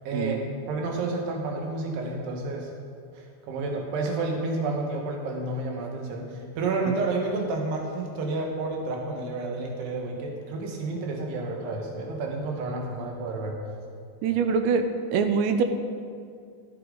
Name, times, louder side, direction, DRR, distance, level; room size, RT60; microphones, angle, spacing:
voice 1, 0.1-2.7 3.2-13.6, right 3 dB, 70° right, 1 dB, 3.4 m, -30 dB
voice 2, 14.2-14.9 15.1-15.6, right 5 dB, 90° right, 7 dB, 2.9 m, -23 dB
13.0 x 11.5 x 3.9 m, 2.2 s
omnidirectional pair, 5.1 m